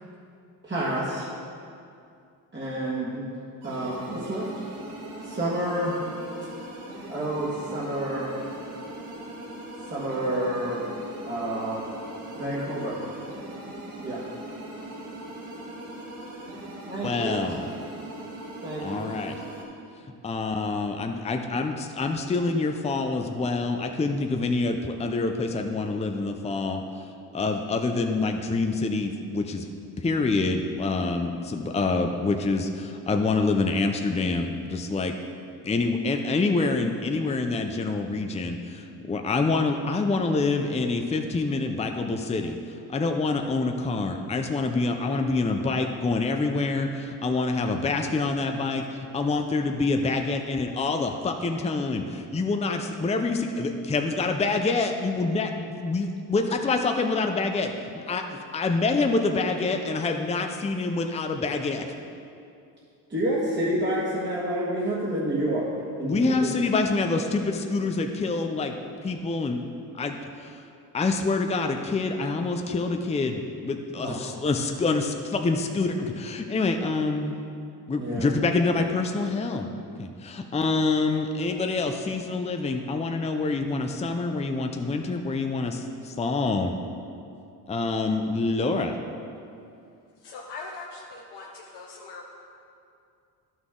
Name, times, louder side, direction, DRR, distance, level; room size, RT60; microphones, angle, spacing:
voice 1, 0.6-1.3 2.5-3.3 3.6-4.6 5.2-6.0 7.1-8.5 9.9-10.9 11.2-11.8 12.3-13.0 14.0-14.2 16.9-17.4 18.6-19.0 63.1-65.7 66.0-66.5 74.0-74.3 78.0-78.3, right 1 dB, 25° right, -8 dB, 1.8 m, -29 dB
sound 1, 3.6-19.6, right 1 dB, 85° right, 1.8 m, -40 dB
voice 2, 17.0-17.7 18.8-19.4 20.2-26.8 27.3-29.7 30.0-35.2 35.6-42.6 42.9-61.9 66.0-68.7 69.0-69.6 70.0-70.6 70.9-77.3 77.9-79.7 80.0-86.7 87.7-89.0, left 3 dB, 15° left, 4 dB, 0.6 m, -26 dB
voice 3, 90.2-92.3, left 3 dB, 80° left, -2 dB, 1.0 m, -41 dB
11.0 x 6.1 x 3.8 m, 2.5 s
cardioid pair, 75°, 40 cm